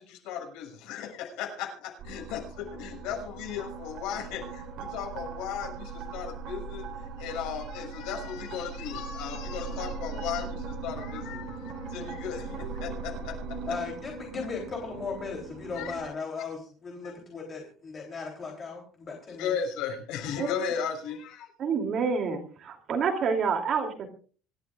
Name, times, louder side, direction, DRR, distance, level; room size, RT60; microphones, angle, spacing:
voice 1, 0.0-13.8 15.7-15.9 17.0-17.1 19.4-21.5, left 8 dB, 90° left, 2 dB, 6.8 m, -36 dB
sound 1, 2.0-16.0, right 4 dB, 55° right, 4.1 m, -39 dB
voice 2, 13.7-19.5, left 4 dB, 25° left, 0 dB, 3.4 m, -37 dB
voice 3, 21.6-24.1, right 5 dB, 40° right, 3 dB, 3.0 m, -28 dB
26.0 x 12.5 x 2.5 m, 0.40 s
cardioid pair, 170°, 0 cm